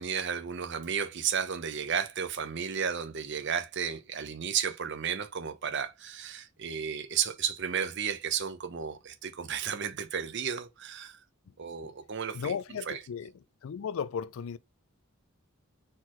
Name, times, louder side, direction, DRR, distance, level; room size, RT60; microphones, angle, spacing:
voice 1, 0.0-11.2 11.6-12.5 12.9-13.0, right 7 dB, 50° right, 0.7 m, -33 dB
voice 2, 12.3-13.3 13.6-14.6, left 7 dB, 65° left, 0.3 m, -35 dB
4.3 x 4.0 x 3.0 m
head